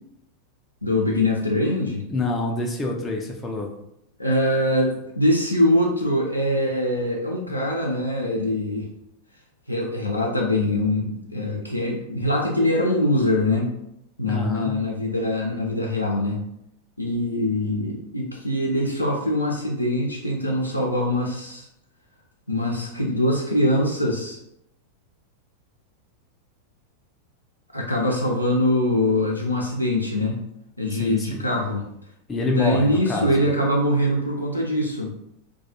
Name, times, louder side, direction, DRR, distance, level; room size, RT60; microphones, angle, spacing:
voice 1, 0.8-2.1 4.2-8.9 9.7-13.7 14.2-16.4 17.0-21.7 22.5-24.4 27.7-30.4 30.8-31.8 32.5-35.1, left 1 dB, 90° left, -2 dB, 0.4 m, -23 dB
voice 2, 2.1-3.7 14.3-14.8 30.9-31.5 32.3-33.5, left 2 dB, 15° left, 0 dB, 0.4 m, -27 dB
2.3 x 2.2 x 2.7 m, 0.78 s
figure-of-eight pair, 90°, 0 cm